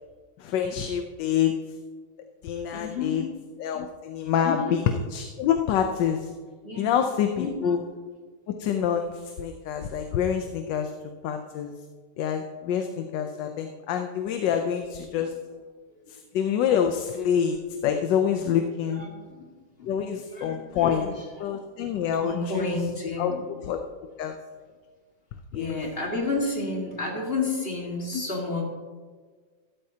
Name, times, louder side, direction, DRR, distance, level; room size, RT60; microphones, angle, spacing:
voice 1, 0.4-1.5 2.4-3.2 3.6-4.8 5.1-6.3 6.8-7.8 8.5-10.9 11.2-11.7 12.2-15.3 16.1-19.0 19.8-21.1 21.4-22.7 23.2-23.3 23.7-23.9 24.2-24.3 25.5-25.8 28.1-28.2, left 8 dB, 75° left, 6 dB, 1.3 m, -26 dB
voice 2, 2.7-3.2 4.4-4.8 6.6-6.9 7.4-7.8 15.9-16.2 18.9-19.5 19.8-19.9 20.3-21.5 21.9-23.4 25.5-28.6, left 3 dB, 30° left, -1 dB, 1.9 m, -31 dB
13.5 x 12.5 x 2.8 m, 1.5 s
omnidirectional pair, 2.0 m